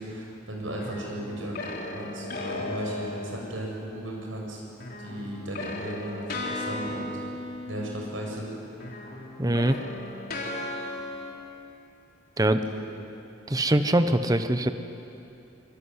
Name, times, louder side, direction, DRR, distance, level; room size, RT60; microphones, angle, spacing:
voice 1, 0.0-4.6 5.0-7.1 7.7-8.5 12.7-12.8, right 1 dB, 85° right, -1 dB, 7.4 m, -35 dB
sound 1, 0.8-3.9 4.8-8.5 8.7-11.3, left 2 dB, 50° left, 3.5 m, -36 dB
voice 2, 9.4-9.8 12.4-12.6 13.5-14.7, right 1 dB, 20° right, 9 dB, 1.0 m, -22 dB
24.0 x 22.5 x 9.7 m, 2.8 s
head